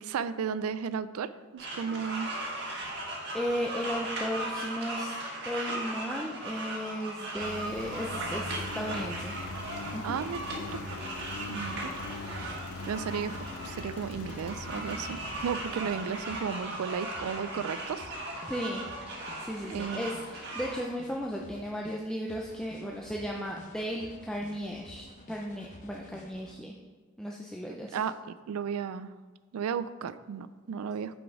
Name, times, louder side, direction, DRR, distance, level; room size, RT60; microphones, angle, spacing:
voice 1, 0.0-2.3 10.0-10.4 10.7-10.8 11.5-11.9 12.3-18.1 19.7-20.1 27.9-28.2 28.5-29.1 29.5-31.2, right 7 dB, 75° right, 14 dB, 0.3 m, -34 dB
sound 1, 1.6-20.8, right 1 dB, 50° right, 1.5 m, -38 dB
voice 2, 3.3-5.2 5.4-9.4 9.9-10.2 18.5-18.8 19.4-26.7 27.2-28.0, equal, 5° left, -1 dB, 0.3 m, -35 dB
Engine, 7.4-16.8, left 3 dB, 70° left, 0.4 m, -42 dB
sound 2, 7.7-22.0 22.3-26.5, left 1 dB, 35° left, 0.7 m, -51 dB
6.1 x 5.1 x 4.7 m, 1.4 s
head